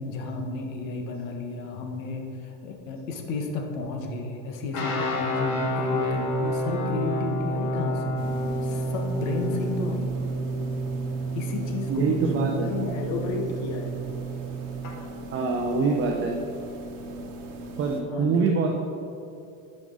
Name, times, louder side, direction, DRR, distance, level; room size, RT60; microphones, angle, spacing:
voice 1, 0.0-8.2 8.6-10.1 11.3-14.0 18.1-18.7, left 3 dB, 90° left, 2 dB, 1.5 m, -32 dB
sound 1, 4.7-14.9, right 1 dB, 50° left, 1.9 m, -29 dB
sound 2, 8.2-18.0, right 1 dB, 55° right, 1.4 m, -40 dB
voice 2, 11.9-12.7 15.3-16.3 17.8-18.7, right 4 dB, 35° right, 1 dB, 0.8 m, -24 dB
13.0 x 5.1 x 3.9 m, 2.7 s
cardioid pair, 140°, 39 cm